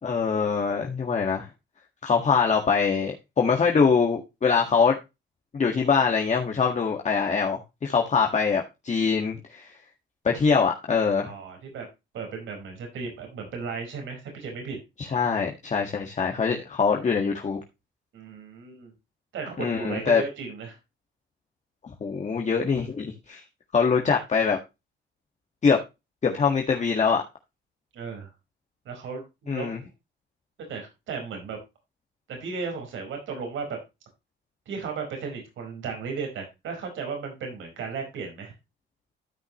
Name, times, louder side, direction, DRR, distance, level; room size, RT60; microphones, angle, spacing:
voice 1, 0.0-1.5 2.0-5.0 5.5-9.7 10.2-11.3 15.0-17.6 19.6-20.2 22.0-23.4 23.7-24.6 25.6-25.8 26.2-27.2 29.5-29.8, left 5 dB, 35° left, 1.7 m, -23 dB
voice 2, 11.2-11.9 12.1-14.8 18.1-18.9 19.3-20.8 27.9-28.3 28.8-29.9 30.7-31.6 32.3-33.8 34.7-38.5, right 5 dB, 75° right, 4.7 m, -35 dB
13.5 x 5.7 x 3.0 m
cardioid pair, 90°, 20 cm